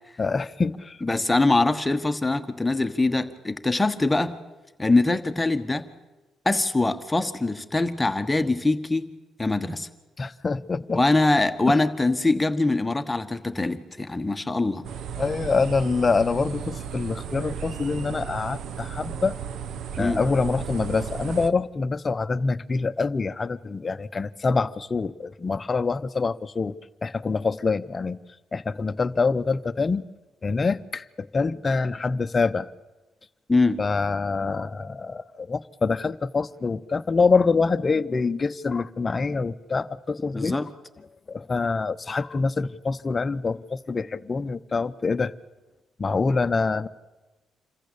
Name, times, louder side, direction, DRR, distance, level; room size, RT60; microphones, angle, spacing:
voice 1, 0.2-1.0 10.2-11.0 11.7-11.8 15.2-19.4 20.0-26.7 27.0-28.2 28.5-30.0 30.4-32.7 33.8-40.6 41.3-45.3 46.0-46.9, left 4 dB, 30° left, 12 dB, 0.8 m, -25 dB
voice 2, 1.0-4.4 4.8-5.9 6.4-9.1 9.4-9.9 10.9-14.9 20.0-20.2 33.5-33.8 40.3-40.7, left 2 dB, 15° left, 8 dB, 1.3 m, -23 dB
sound 1, 14.8-21.5, right 8 dB, 75° right, 0.9 m, -35 dB
27.0 x 15.0 x 8.5 m, 1.1 s
cardioid pair, 90°, 0 cm